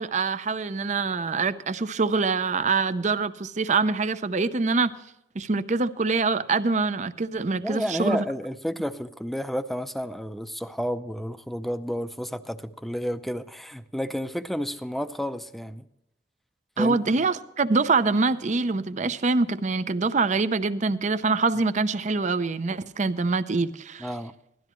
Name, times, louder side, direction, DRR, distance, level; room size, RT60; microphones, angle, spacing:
voice 1, 0.0-4.9 5.3-8.2 16.8-24.1, right 4 dB, 40° right, 0.6 m, -25 dB
voice 2, 7.6-15.9 16.8-17.3 24.0-24.3, equal, ahead, 0.5 m, -31 dB
16.5 x 12.5 x 3.1 m
head